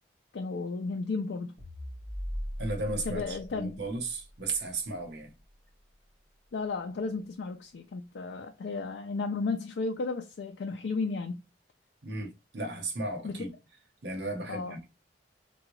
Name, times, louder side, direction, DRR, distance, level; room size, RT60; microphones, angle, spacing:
voice 1, 0.3-1.5 3.1-3.8 6.5-11.4 13.2-13.4 14.5-14.8, left 4 dB, 75° left, 0.4 m, -33 dB
sound 1, 1.6-6.1, equal, 10° right, 1.4 m, -41 dB
voice 2, 2.6-5.3 12.0-13.5 14.0-14.9, right 2 dB, 75° right, 0.9 m, -35 dB
3.6 x 2.3 x 3.0 m
head